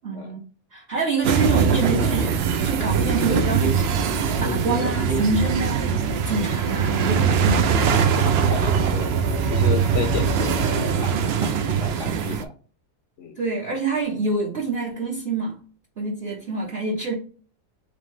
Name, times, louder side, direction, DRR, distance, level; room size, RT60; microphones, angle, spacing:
voice 1, 0.0-0.4 0.7-2.4 2.6-4.1 4.4-6.0 6.3-8.1 13.4-15.6 16.0-17.1, right 3 dB, 45° right, -4 dB, 1.1 m, -26 dB
sound 1, 1.2-12.4, right 6 dB, 70° right, 0.6 m, -22 dB
sound 2, 1.5-11.0, right 2 dB, 85° right, 1.5 m, -32 dB
voice 2, 8.2-9.1 9.5-11.2 11.4-11.5 11.8-12.5 13.2-13.4, left 7 dB, 65° left, 4 dB, 0.9 m, -32 dB
3.7 x 3.2 x 3.2 m, 0.39 s
omnidirectional pair, 1.6 m